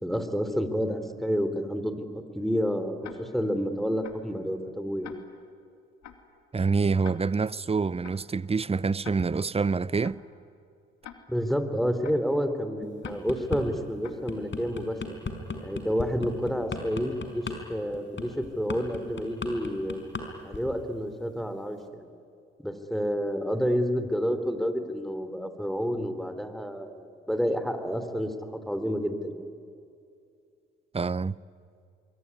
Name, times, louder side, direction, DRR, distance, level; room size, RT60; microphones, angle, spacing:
voice 1, 0.0-5.1 11.3-15.0 15.6-20.0 20.4-22.1 22.6-29.5, equal, ahead, 3.5 m, -29 dB
Tick-tock, 3.0-3.1 4.0-4.2 5.0-5.1 6.0-6.2 7.0-7.1 8.0-8.2 9.0-9.1 10.0-10.2 11.0-11.1 12.0-12.2 13.0-13.1 14.0-14.2, left 12 dB, 65° left, 2.6 m, -44 dB
voice 2, 6.5-10.2 30.9-31.4, right 4 dB, 20° right, 0.7 m, -26 dB
sound 1, 12.8-13.6 14.0-20.3 20.5-20.8, left 4 dB, 40° left, 5.2 m, -35 dB
27.0 x 22.5 x 9.8 m
hypercardioid pair, 50°, 29 cm